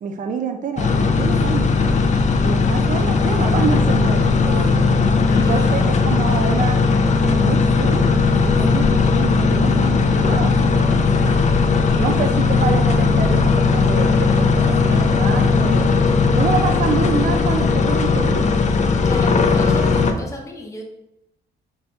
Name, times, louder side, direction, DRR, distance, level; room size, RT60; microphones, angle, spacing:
voice 1, 0.0-2.0 2.4-4.9 5.3-11.3 12.0-18.5, right 6 dB, 40° right, 6 dB, 0.5 m, -27 dB
sound 1, 0.8-20.1, left 4 dB, 35° left, 0.4 m, -17 dB
voice 2, 5.3-5.7 11.9-12.2 19.0-20.8, left 2 dB, 15° left, 0 dB, 0.8 m, -33 dB
4.4 x 3.3 x 2.8 m, 0.86 s
cardioid pair, 90°, 20 cm